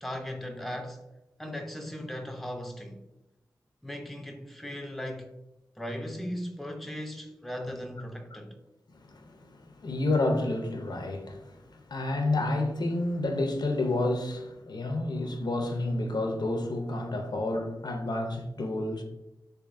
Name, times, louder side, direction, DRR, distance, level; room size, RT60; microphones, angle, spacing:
voice 1, 0.0-1.0 1.4-3.0 3.8-5.3 5.8-8.6, equal, ahead, 0.5 m, -37 dB
voice 2, 9.1-19.0, left 2 dB, 65° left, 0.5 m, -30 dB
3.4 x 3.2 x 2.5 m
wide cardioid pair, 60°, 8 cm